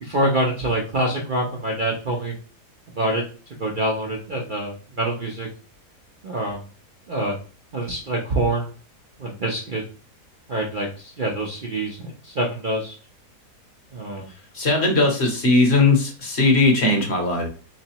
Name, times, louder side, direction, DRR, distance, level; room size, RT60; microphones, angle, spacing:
voice 1, 0.0-2.4 3.0-3.2 3.6-5.5 6.2-6.6 7.1-7.3 7.7-8.7 9.2-9.8 10.5-12.9 13.9-14.3, right 1 dB, 55° right, -1 dB, 0.5 m, -25 dB
voice 2, 14.5-17.5, left 2 dB, 50° left, 2 dB, 1.0 m, -18 dB
3.7 x 3.2 x 2.9 m, 0.38 s
omnidirectional pair, 1.8 m